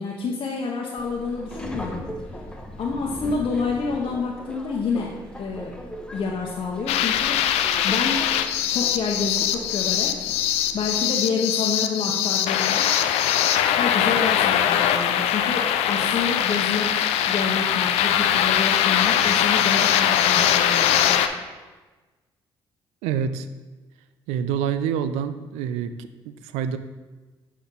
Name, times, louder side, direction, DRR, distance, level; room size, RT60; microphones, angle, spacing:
voice 1, 0.0-2.1 2.8-5.7 6.1-7.4 7.8-8.3 8.7-10.3 10.7-12.9 13.7-21.1, left 4 dB, 50° left, -2 dB, 0.9 m, -28 dB
Subway metro underground, 1.0-11.0, equal, 10° left, 1.0 m, -39 dB
sound 1, 6.9-21.3, left 10 dB, 75° left, 0.4 m, -21 dB
voice 2, 23.0-23.5 24.3-26.8, right 8 dB, 80° right, 11 dB, 0.4 m, -27 dB
7.2 x 4.2 x 3.9 m, 1.2 s
hypercardioid pair, 60°, 11 cm